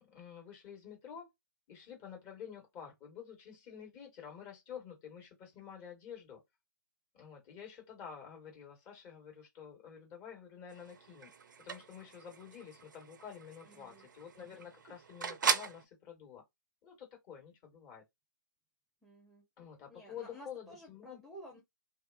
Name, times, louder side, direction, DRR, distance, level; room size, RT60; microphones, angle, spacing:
voice 1, 0.1-1.3 1.7-6.4 7.1-11.3 11.6-16.4 16.8-18.0 19.6-21.2, left 8 dB, 30° left, 1.3 m, -49 dB
sound 1, 10.7-15.8, right 6 dB, 65° right, 0.5 m, -39 dB
voice 2, 13.6-14.1 19.0-19.4 19.9-21.6, equal, ahead, 0.7 m, -53 dB
2.6 x 2.4 x 2.4 m
figure-of-eight pair, 120°, 11 cm